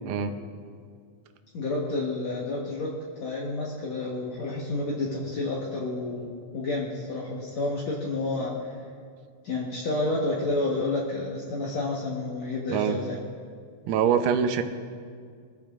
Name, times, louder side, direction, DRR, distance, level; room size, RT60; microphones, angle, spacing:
voice 1, 1.5-8.8 9.4-13.2, left 2 dB, 60° left, -5 dB, 2.3 m, -30 dB
voice 2, 13.9-14.6, right 8 dB, 75° right, 7 dB, 2.3 m, -24 dB
23.5 x 14.0 x 2.5 m, 2.1 s
omnidirectional pair, 4.0 m